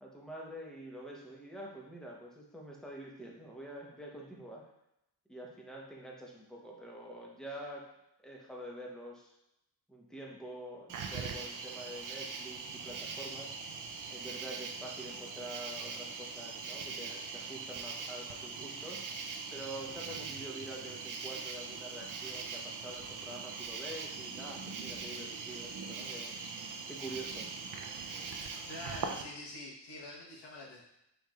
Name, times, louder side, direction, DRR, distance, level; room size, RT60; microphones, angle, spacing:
voice 1, 0.0-4.7 5.3-7.8 8.2-9.3 9.9-13.6 14.1-19.0 19.5-26.3 26.9-27.5, right 1 dB, ahead, -2 dB, 0.8 m, -46 dB
Cricket, 10.9-29.2, right 5 dB, 45° right, 0.5 m, -41 dB
voice 2, 28.6-30.8, left 2 dB, 65° left, -4 dB, 1.1 m, -46 dB
4.5 x 3.2 x 2.4 m, 0.83 s
cardioid pair, 95°, 44 cm